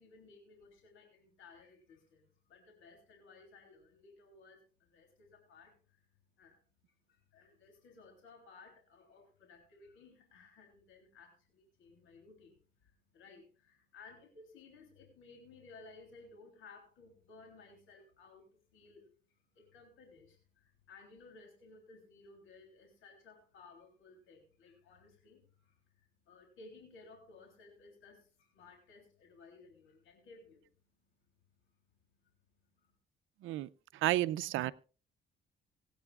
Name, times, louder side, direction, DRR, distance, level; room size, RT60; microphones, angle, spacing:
voice 1, 0.0-6.0 6.4-6.6 6.9-30.7 31.1-33.0, left 3 dB, 85° left, 3.3 m, -59 dB
voice 2, 33.4-34.7, right 15 dB, 85° right, 0.6 m, -32 dB
25.5 x 8.8 x 2.4 m
cardioid pair, 90°, 20 cm